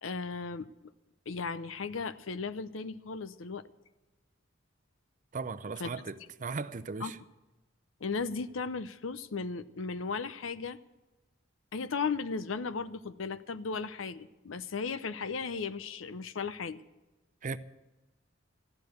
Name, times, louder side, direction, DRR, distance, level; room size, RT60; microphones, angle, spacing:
voice 1, 0.0-0.7 1.3-3.6 5.8-5.9 7.0-7.1 8.0-10.8 11.7-16.8, left 4 dB, 80° left, 0.7 m, -36 dB
voice 2, 5.3-7.2 17.4-17.6, right 4 dB, 40° right, 0.6 m, -37 dB
13.5 x 10.5 x 8.0 m
head